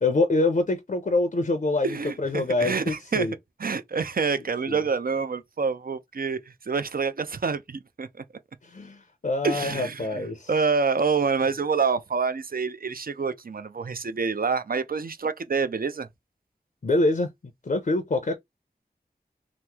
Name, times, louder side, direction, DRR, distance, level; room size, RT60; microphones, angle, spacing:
voice 1, 0.0-3.3 4.7-4.8 8.6-10.5 16.8-17.3 17.6-18.4, left 2 dB, 50° left, 0.5 m, -25 dB
voice 2, 1.8-3.3 3.6-8.2 9.4-16.1, right 5 dB, 60° right, 0.4 m, -27 dB
2.9 x 2.0 x 3.4 m
wide cardioid pair, 55°, 17 cm